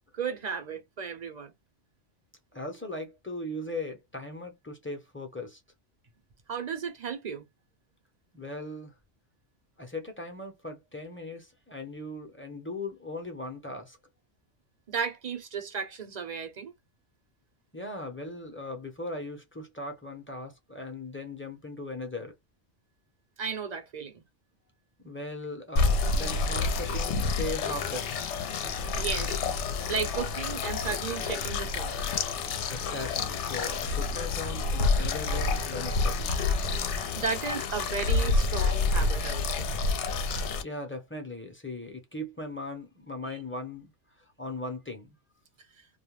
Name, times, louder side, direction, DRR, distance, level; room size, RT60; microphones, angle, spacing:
voice 1, 0.1-1.5 6.5-7.5 14.9-16.7 23.4-24.2 28.9-29.4 29.9-32.0 37.2-39.7, right 6 dB, 45° right, 0.7 m, -34 dB
voice 2, 2.5-5.6 8.3-8.9 9.8-14.0 17.7-22.3 25.0-28.2 32.7-36.4 40.6-43.9 44.4-45.2, left 2 dB, 15° left, 0.6 m, -38 dB
sound 1, 25.8-40.6, left 3 dB, 75° left, 0.9 m, -28 dB
2.4 x 2.1 x 3.0 m
omnidirectional pair, 1.2 m